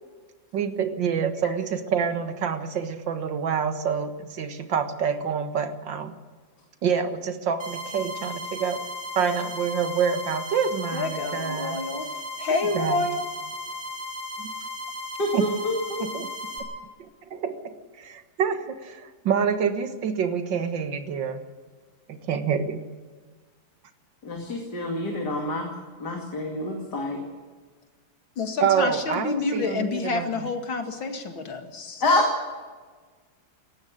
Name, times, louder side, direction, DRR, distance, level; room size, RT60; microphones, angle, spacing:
voice 1, 0.5-6.1 6.8-8.8 9.2-11.8 12.5-13.0 14.4-14.5 15.3-15.5 16.0-16.3 17.0-21.4 22.1-22.8 28.6-30.4, right 7 dB, 70° right, 8 dB, 2.2 m, -27 dB
sound 1, 7.6-16.6, left 1 dB, 15° right, 5.3 m, -35 dB
voice 2, 10.9-12.1 12.4-13.3 28.4-32.0, left 3 dB, 80° left, 5 dB, 3.0 m, -28 dB
voice 3, 15.2-16.1 24.2-25.7 26.0-27.2 32.0-32.3, left 2 dB, 55° left, 1 dB, 3.1 m, -27 dB
18.5 x 14.5 x 9.9 m, 1.4 s
omnidirectional pair, 2.1 m